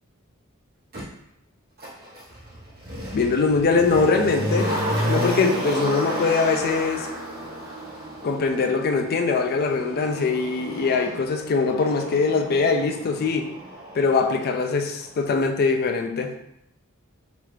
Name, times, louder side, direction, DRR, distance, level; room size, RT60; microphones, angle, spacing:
Motor vehicle (road), 0.9-1.0 1.8-14.7 15.0-15.1, equal, 50° right, 1.0 m, -31 dB
voice 1, 3.1-4.7 5.1-7.1 8.2-13.5 14.0-16.3, left 4 dB, 45° left, 5 dB, 0.4 m, -22 dB
3.0 x 2.4 x 3.2 m, 0.78 s
head